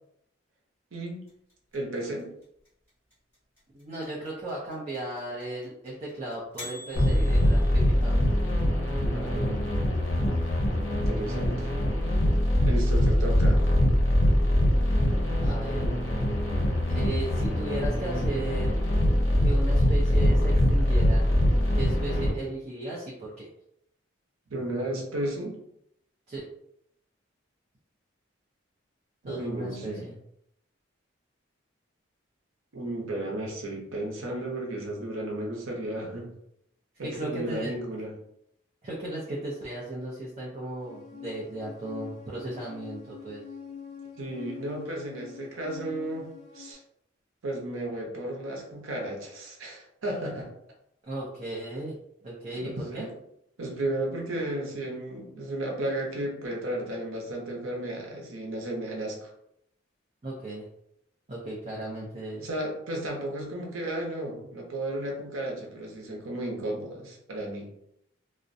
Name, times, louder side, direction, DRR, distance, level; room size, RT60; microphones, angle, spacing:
voice 1, 0.9-1.2 1.7-2.3 9.1-9.7 10.9-11.7 12.6-13.7 24.5-25.6 29.2-30.0 32.7-36.3 37.0-38.1 44.2-46.8 47.4-50.5 52.6-53.1 53.6-59.3 62.4-67.7, right 1 dB, 90° right, 0 dB, 0.7 m, -34 dB
sound 1, 1.3-8.3, left 1 dB, 10° left, 1.3 m, -46 dB
voice 2, 3.7-8.2 11.6-11.7 15.4-15.8 16.9-18.8 19.4-21.2 21.7-23.5 26.3-26.4 29.3-30.2 37.0-37.8 38.8-43.4 51.0-52.0 52.2-53.1 60.2-60.7 61.3-62.4, right 1 dB, 35° right, -5 dB, 0.5 m, -36 dB
sound 2, 6.9-22.3, equal, 70° left, 0.7 m, -23 dB
sound 3, 40.8-46.7, left 7 dB, 30° left, 0.4 m, -44 dB
2.4 x 2.1 x 2.6 m, 0.74 s
head